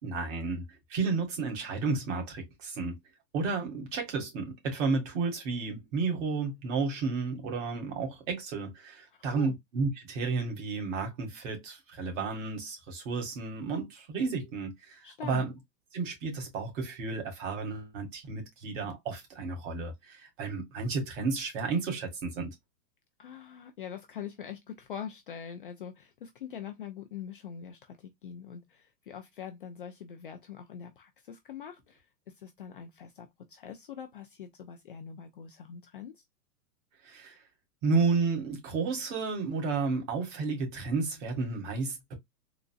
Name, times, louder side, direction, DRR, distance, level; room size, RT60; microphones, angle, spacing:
voice 1, 0.0-3.0 3.3-15.5 15.9-22.5 37.0-37.4 37.8-42.1, right 4 dB, 50° right, 1.9 m, -32 dB
voice 2, 9.1-9.5 15.0-15.5 23.2-36.2, left 8 dB, 35° left, 0.4 m, -44 dB
4.0 x 2.3 x 2.2 m
hypercardioid pair, 140°, 50 cm